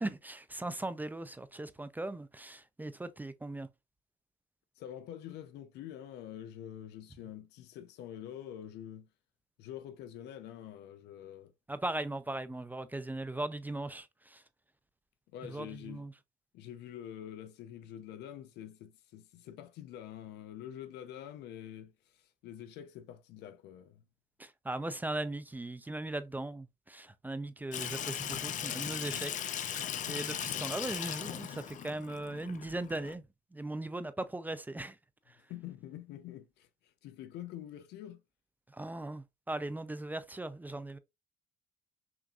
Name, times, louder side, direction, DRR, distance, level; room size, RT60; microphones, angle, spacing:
voice 1, 0.0-3.7 11.7-14.4 15.5-16.1 24.4-33.2 33.5-35.0 35.3-35.4 38.7-41.0, right 2 dB, 10° right, 0.4 m, -39 dB
voice 2, 4.8-9.1 9.6-11.5 15.3-16.1 16.5-24.0 35.4-38.2, left 11 dB, 85° left, 0.7 m, -46 dB
Water tap faucet / Sink (filling or washing), 27.7-33.1, left 9 dB, 50° left, 0.6 m, -38 dB
5.9 x 2.5 x 2.4 m
cardioid pair, 110°, 17 cm